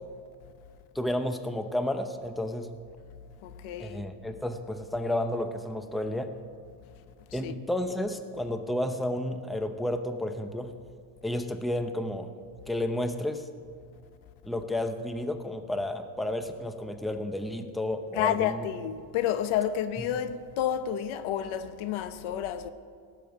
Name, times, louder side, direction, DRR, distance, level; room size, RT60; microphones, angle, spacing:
voice 1, 0.9-2.7 3.8-6.3 7.3-10.7 11.2-12.3 12.7-13.4 14.4-18.6, left 1 dB, ahead, 0.8 m, -31 dB
voice 2, 3.4-4.0 7.3-7.5 18.1-22.7, left 10 dB, 80° left, 1.0 m, -30 dB
18.0 x 7.1 x 8.1 m
cardioid pair, 115°, 48 cm